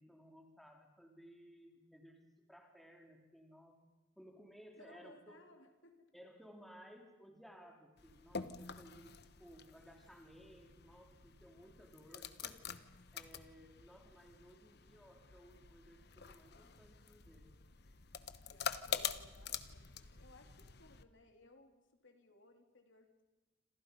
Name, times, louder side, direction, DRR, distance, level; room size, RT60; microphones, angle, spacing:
voice 1, 0.0-3.8 4.2-5.4 6.1-17.5, equal, ahead, 1 dB, 3.8 m, -59 dB
voice 2, 4.8-6.1 18.5-23.2, left 1 dB, 75° left, 4 dB, 3.2 m, -63 dB
sound 1, 8.0-21.0, left 7 dB, 55° left, 1.1 m, -47 dB
28.5 x 26.5 x 5.5 m, 1.1 s
head